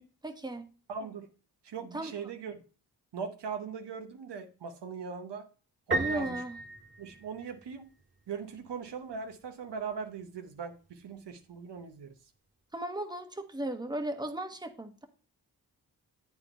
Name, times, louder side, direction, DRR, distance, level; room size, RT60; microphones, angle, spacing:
voice 1, 0.2-0.7 1.9-2.1 5.9-6.6 12.7-15.0, right 1 dB, 10° right, 1.2 m, -36 dB
voice 2, 0.9-1.3 1.6-2.6 3.1-5.5 5.9-6.4 7.0-7.9 8.3-12.1, right 6 dB, 75° right, 1.0 m, -40 dB
Piano, 5.9-7.7, right 2 dB, 25° right, 1.6 m, -34 dB
8.6 x 4.8 x 4.4 m
cardioid pair, 60°, 42 cm